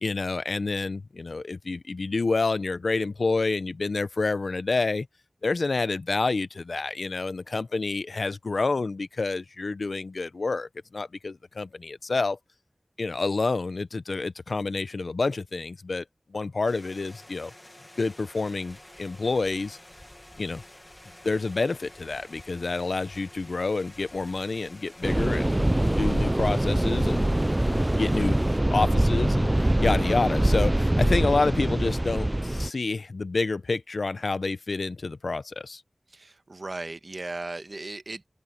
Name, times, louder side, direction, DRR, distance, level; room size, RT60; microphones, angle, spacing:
voice 1, 0.0-5.1 5.4-12.4 13.0-16.0 16.3-17.5 18.0-19.8 20.4-20.6 21.2-25.6 26.0-27.3 27.9-28.4 28.7-35.8, left 3 dB, 90° left, 0.7 m, -28 dB
sound 1, 16.6-28.6, left 1 dB, 25° left, 1.6 m, -50 dB
Truck, 18.1-28.6, equal, 5° left, 6.1 m, -56 dB
sound 2, 25.0-32.7, right 1 dB, 25° right, 0.4 m, -23 dB
voice 2, 36.1-38.3, right 2 dB, 65° right, 1.3 m, -37 dB
open air
wide cardioid pair, 55°, 0 cm